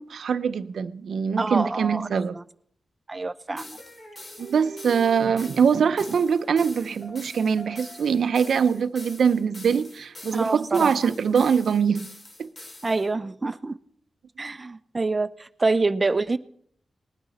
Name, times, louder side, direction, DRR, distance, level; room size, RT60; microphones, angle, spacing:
voice 1, 0.0-2.4 4.4-12.1 12.4-12.5, right 6 dB, 80° right, 0.5 m, -23 dB
voice 2, 1.4-2.4 3.1-3.8 10.3-10.9 11.3-11.4 12.8-13.8 14.4-16.4, right 3 dB, 30° right, 0.5 m, -26 dB
sound 1, 3.6-13.1, left 2 dB, 40° left, 1.5 m, -45 dB
sound 2, 3.8-10.9, right 2 dB, 80° left, 5.8 m, -47 dB
20.0 x 9.6 x 4.2 m
cardioid pair, 80°, 0 cm